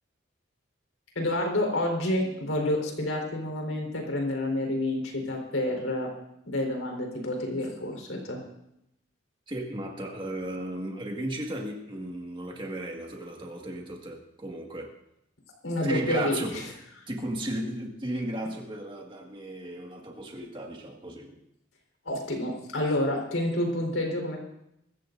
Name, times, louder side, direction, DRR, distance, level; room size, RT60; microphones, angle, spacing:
voice 1, 1.2-6.1 6.5-8.4 15.6-16.6 22.0-24.4, left 1 dB, 85° left, 1 dB, 4.2 m, -29 dB
voice 2, 9.5-14.9 15.8-16.6 17.1-21.4, right 1 dB, 25° right, 0 dB, 1.8 m, -35 dB
23.5 x 14.0 x 2.6 m, 0.81 s
head